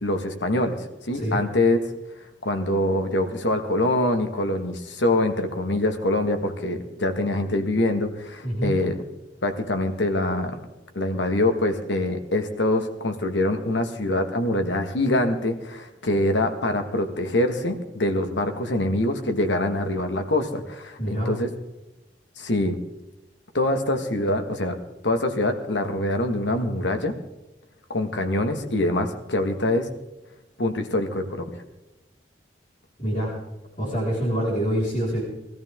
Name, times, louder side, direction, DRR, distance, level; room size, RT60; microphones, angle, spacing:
voice 1, 0.0-1.8 2.4-8.9 9.4-10.6 10.9-21.5 22.4-22.8 23.5-24.8 25.0-27.1 27.9-29.9 30.6-31.6, left 1 dB, 80° left, 6 dB, 1.6 m, -24 dB
voice 2, 8.4-8.8 21.0-21.3 33.0-33.3 33.8-35.2, equal, 45° left, -5 dB, 4.7 m, -25 dB
20.0 x 14.0 x 3.7 m, 1.0 s
head